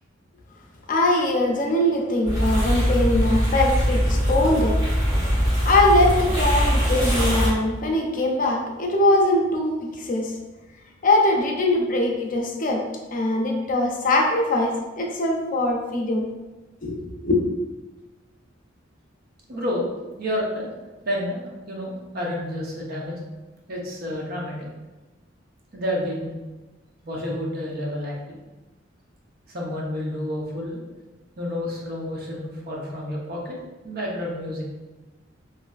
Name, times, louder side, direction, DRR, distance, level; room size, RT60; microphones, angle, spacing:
voice 1, 0.9-4.8 5.6-10.3 11.0-12.8 13.1-16.3 16.8-17.4, left 1 dB, 45° left, 0 dB, 0.5 m, -22 dB
sound 1, 2.2-7.5, equal, 20° right, 1.4 m, -22 dB
voice 2, 19.5-19.9 20.2-20.7 21.0-23.2 23.7-24.7 25.7-26.3 27.0-28.1 29.5-30.8 31.4-33.6 33.8-34.6, left 1 dB, 55° right, -2 dB, 0.7 m, -29 dB
3.1 x 2.6 x 2.3 m, 1.2 s
head